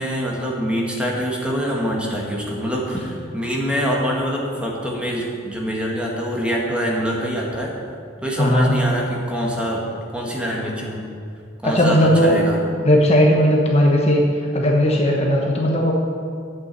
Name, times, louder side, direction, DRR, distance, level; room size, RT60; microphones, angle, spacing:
voice 1, 0.0-7.7 8.2-9.8 10.1-11.0 11.6-12.6, equal, 5° right, -3 dB, 1.8 m, -24 dB
voice 2, 8.4-8.9 11.6-12.4 12.8-14.2 14.5-15.9, equal, 35° left, -1 dB, 1.1 m, -16 dB
8.7 x 7.2 x 8.5 m, 2.3 s
head